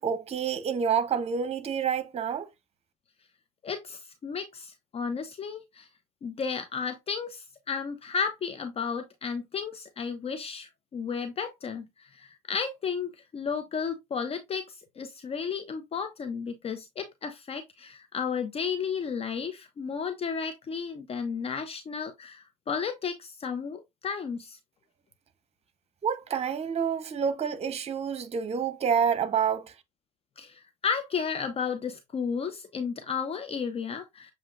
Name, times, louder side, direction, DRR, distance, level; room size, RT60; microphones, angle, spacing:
voice 1, 0.0-2.5 26.0-29.7, right 7 dB, 35° right, 0.9 m, -28 dB
voice 2, 3.6-5.9 6.2-24.6 30.4-34.3, left 6 dB, 35° left, 0.8 m, -33 dB
7.3 x 2.8 x 2.5 m
hypercardioid pair, 65°, 18 cm